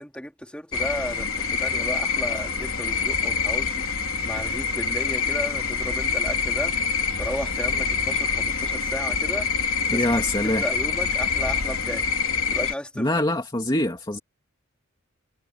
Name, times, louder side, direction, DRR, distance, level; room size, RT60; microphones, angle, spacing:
voice 1, 0.0-3.9 4.2-6.7 7.2-9.5 9.9-12.1 12.5-13.1, equal, 5° left, 3.5 m, -34 dB
sound 1, 0.7-12.7, left 5 dB, 75° left, 3.4 m, -26 dB
voice 2, 9.9-10.6 13.0-14.2, left 1 dB, 20° left, 2.4 m, -24 dB
head